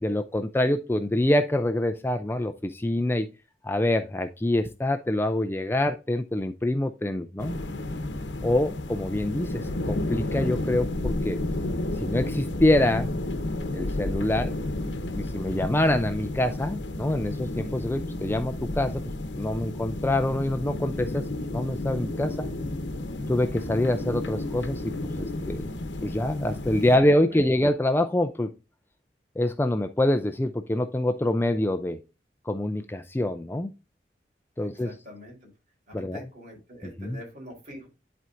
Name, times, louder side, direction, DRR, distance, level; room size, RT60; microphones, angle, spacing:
voice 1, 0.0-3.3 3.6-7.5 8.4-11.4 12.0-13.1 13.7-14.6 15.1-19.0 19.3-22.5 23.3-25.6 26.0-28.5 29.4-32.0 32.4-33.7 34.6-34.9 35.9-36.2 36.8-37.2, left 1 dB, 10° left, 0.4 m, -25 dB
sound 1, 7.4-27.0, left 1 dB, 80° left, 0.9 m, -32 dB
voice 2, 27.1-27.5 34.6-35.5 35.9-37.9, equal, 45° right, 3.9 m, -45 dB
11.0 x 4.5 x 2.5 m
head